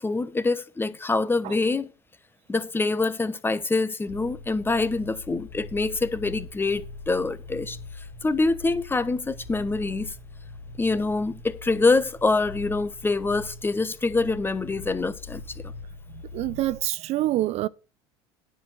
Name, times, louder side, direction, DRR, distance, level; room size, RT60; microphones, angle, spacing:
voice 1, 0.0-1.9 2.5-7.8 8.2-10.1 10.8-15.7, left 3 dB, 15° left, 0.9 m, -25 dB
sound 1, 4.1-16.8, left 3 dB, 60° left, 2.8 m, -42 dB
voice 2, 16.1-17.7, right 15 dB, 50° right, 0.4 m, -26 dB
10.0 x 4.4 x 7.6 m
hypercardioid pair, 85°, 14 cm